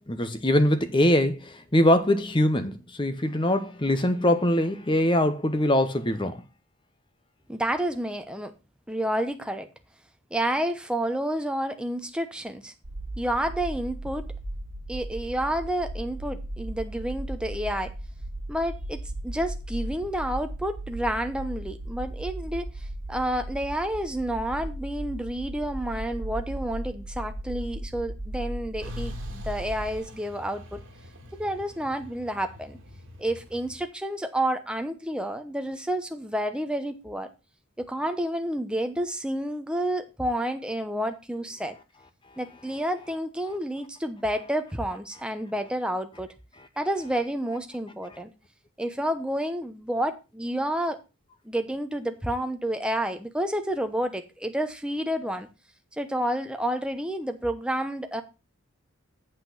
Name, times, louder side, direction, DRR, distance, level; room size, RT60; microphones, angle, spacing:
voice 1, 0.1-6.4, left 1 dB, 20° left, 0.9 m, -23 dB
voice 2, 7.5-8.5 8.9-9.7 10.3-12.7 13.2-14.3 14.9-17.9 18.5-30.8 31.4-32.8 33.2-37.3 37.8-41.8 42.4-46.3 46.8-48.3 48.8-51.0 51.4-55.5 55.9-58.2, right 1 dB, 5° right, 0.8 m, -30 dB
sound 1, 12.8-30.0, right 1 dB, 75° right, 1.4 m, -36 dB
Truck, 28.8-33.8, left 2 dB, 55° right, 2.4 m, -45 dB
8.2 x 5.9 x 5.6 m
head